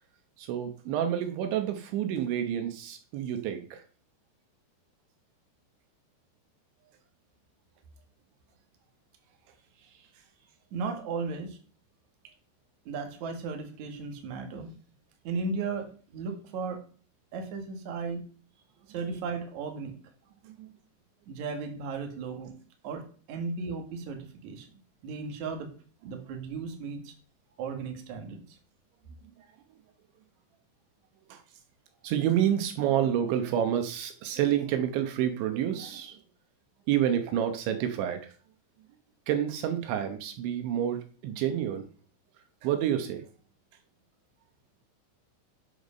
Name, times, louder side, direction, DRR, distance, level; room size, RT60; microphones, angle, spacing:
voice 1, 0.4-3.8 20.5-20.7 31.3-31.4 32.0-36.2 36.9-38.3 39.3-41.8 42.6-43.2, right 10 dB, 80° right, 8 dB, 3.4 m, -28 dB
voice 2, 10.7-11.6 12.9-14.7 15.2-16.8 17.3-18.2 18.9-19.9 21.3-22.5 22.8-23.0 23.3-24.7 25.0-25.7 26.0-27.1 27.6-28.6, right 4 dB, 50° right, 4 dB, 2.7 m, -35 dB
11.0 x 8.1 x 5.2 m, 0.41 s
omnidirectional pair, 5.4 m